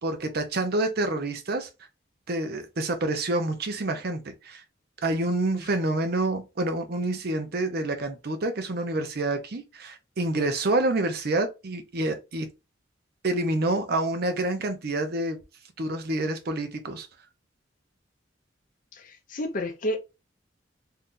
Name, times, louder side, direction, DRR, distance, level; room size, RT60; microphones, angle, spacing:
voice 1, 0.0-1.7 2.3-4.6 5.0-12.5 13.2-15.4 15.8-17.1, right 2 dB, 55° right, 0.7 m, -28 dB
voice 2, 18.9-20.0, left 1 dB, 45° left, 0.6 m, -30 dB
2.7 x 2.3 x 3.6 m
head